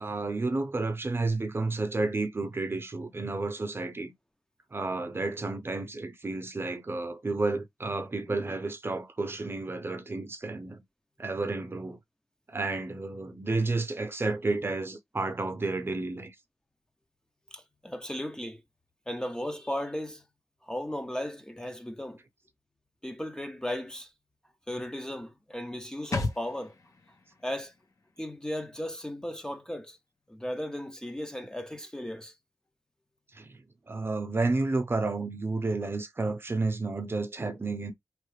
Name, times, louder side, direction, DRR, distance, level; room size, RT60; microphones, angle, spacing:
voice 1, 0.0-4.1 4.7-10.8 11.2-12.0 12.5-16.3 33.3-33.6 33.9-37.9, right 3 dB, 35° right, 0.8 m, -31 dB
voice 2, 17.5-18.6 19.1-20.2 20.6-22.2 23.0-24.1 24.7-26.8 27.4-27.7 28.2-30.0 30.3-32.3, left 1 dB, 10° left, 0.8 m, -36 dB
sound 1, 26.1-29.6 29.9-30.0, left 3 dB, 50° left, 1.2 m, -38 dB
4.5 x 3.3 x 3.2 m
wide cardioid pair, 90°, 7 cm